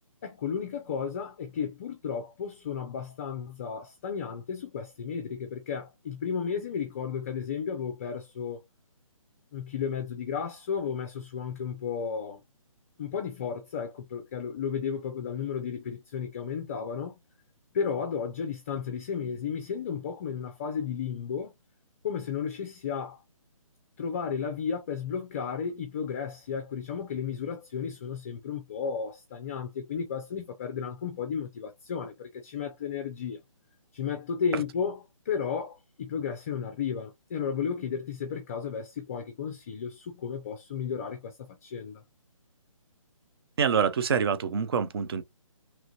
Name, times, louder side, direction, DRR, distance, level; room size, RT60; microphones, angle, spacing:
voice 1, 0.2-8.6 9.5-12.4 13.0-17.2 17.7-21.5 22.0-23.2 24.0-33.4 33.9-35.0 35.3-42.0, left 6 dB, 25° left, 0.4 m, -33 dB
voice 2, 43.6-45.2, right 7 dB, 45° right, 0.4 m, -26 dB
3.0 x 2.4 x 2.8 m
hypercardioid pair, 155°, 18 cm